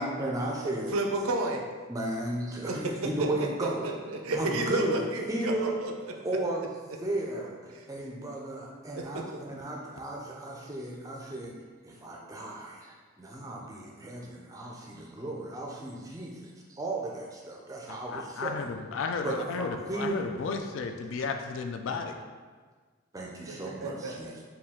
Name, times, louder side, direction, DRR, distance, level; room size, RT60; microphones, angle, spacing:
voice 1, 0.0-0.9 1.9-3.9 4.3-5.8 6.2-6.7 7.0-11.5 11.8-18.5 19.2-20.2 23.1-24.3, right 1 dB, 15° right, -2 dB, 0.4 m, -35 dB
voice 2, 0.9-1.6 2.7-2.9 3.2-3.3 3.6-6.1 7.7-7.9 9.0-9.5 23.5-24.4, right 2 dB, 80° right, 2 dB, 0.5 m, -32 dB
voice 3, 17.9-22.2, left 4 dB, 65° left, 5 dB, 0.3 m, -33 dB
4.2 x 2.3 x 3.6 m, 1.5 s
head